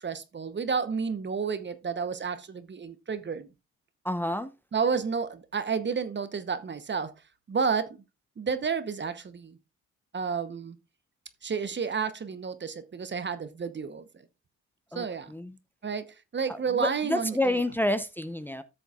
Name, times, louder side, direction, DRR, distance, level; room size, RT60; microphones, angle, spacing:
voice 1, 0.0-3.5 4.7-7.1 7.5-8.0 8.4-9.6 10.1-10.8 11.4-14.2 14.9-15.3 15.8-17.6, right 5 dB, 40° right, 0.9 m, -31 dB
voice 2, 4.0-4.5 14.9-15.6 16.5-18.6, left 1 dB, 5° left, 0.7 m, -29 dB
13.0 x 6.9 x 2.4 m
cardioid pair, 70°, 29 cm